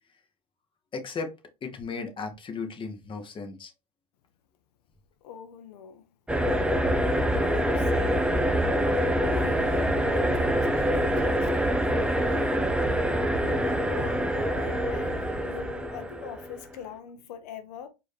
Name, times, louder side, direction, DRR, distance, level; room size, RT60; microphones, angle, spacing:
voice 1, 0.9-1.3 1.6-3.7, left 4 dB, 25° left, 1.1 m, -35 dB
voice 2, 5.2-6.1 6.7-8.3 9.3-12.6 13.4-17.9, left 8 dB, 75° left, 0.7 m, -43 dB
sound 1, 6.3-16.6, equal, 5° right, 0.6 m, -25 dB
4.7 x 2.9 x 3.3 m
hypercardioid pair, 100°, 20 cm